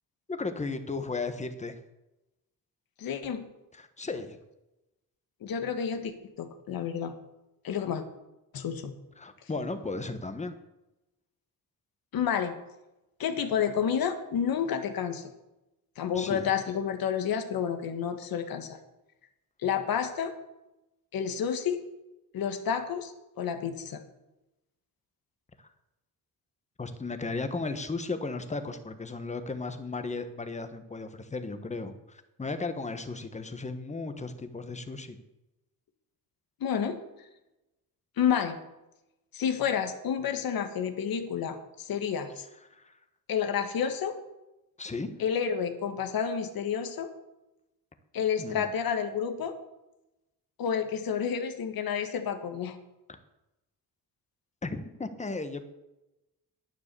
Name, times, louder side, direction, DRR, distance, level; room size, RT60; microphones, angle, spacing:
voice 1, 0.3-1.8 3.7-4.4 9.2-10.5 16.1-16.5 25.6-25.7 26.8-35.2 42.7-42.9 44.8-45.1 48.4-48.7 53.1-53.2 54.6-55.6, left 3 dB, 20° left, 9 dB, 1.3 m, -35 dB
voice 2, 3.0-3.5 5.4-7.1 7.6-8.0 8.5-8.9 12.1-12.6 13.2-15.2 16.0-18.8 19.6-20.3 21.1-21.8 22.3-24.0 36.6-37.0 38.2-38.6 39.3-42.5 43.3-44.2 45.2-47.1 48.1-49.6 50.6-52.8, left 7 dB, 75° left, 7 dB, 1.7 m, -30 dB
10.5 x 9.4 x 6.9 m, 0.95 s
cardioid pair, 110°, 36 cm